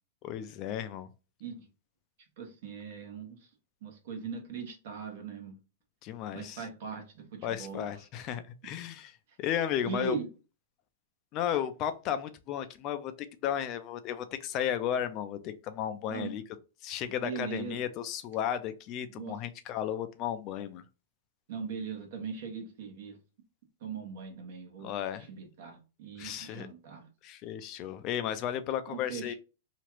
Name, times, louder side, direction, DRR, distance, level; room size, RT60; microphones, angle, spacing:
voice 1, 0.2-1.1 6.0-6.7 7.4-10.2 11.3-16.4 16.8-20.8 24.8-25.3 26.2-26.7 27.2-29.3, left 10 dB, 30° left, 0.3 m, -34 dB
voice 2, 2.4-3.4 3.8-5.5 6.3-7.9 8.6-8.7 9.8-10.3 16.1-16.3 17.2-17.8 19.2-19.4 21.5-23.2 23.8-24.9 25.3-27.0 28.9-29.3, right 5 dB, 55° right, 1.2 m, -39 dB
3.0 x 2.4 x 3.0 m
hypercardioid pair, 150°, 0 cm